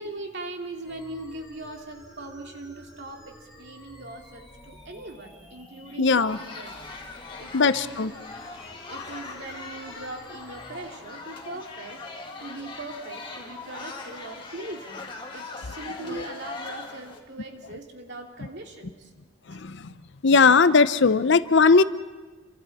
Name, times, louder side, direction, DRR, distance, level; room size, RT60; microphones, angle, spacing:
voice 1, 0.0-6.7 7.1-8.3 8.9-12.0 12.4-19.1, right 2 dB, 50° right, 2 dB, 2.6 m, -40 dB
sound 1, 0.8-10.8, left 1 dB, ahead, 4.5 m, -50 dB
voice 2, 6.0-6.4 7.5-7.7 8.0-8.1 19.5-19.9 20.2-21.8, left 4 dB, 55° left, 13 dB, 0.6 m, -18 dB
sound 2, 6.3-17.2, left 3 dB, 25° left, 2.1 m, -40 dB
29.0 x 24.5 x 4.2 m, 1.2 s
head